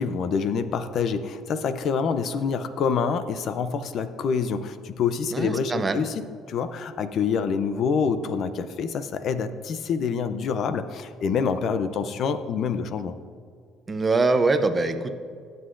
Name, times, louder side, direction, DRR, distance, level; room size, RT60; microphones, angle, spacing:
voice 1, 0.0-13.2, left 6 dB, 50° left, 11 dB, 0.5 m, -26 dB
voice 2, 5.3-6.0 13.9-15.1, right 3 dB, 20° right, 8 dB, 0.6 m, -23 dB
21.0 x 7.8 x 2.5 m, 2.1 s
cardioid pair, 150°, 0 cm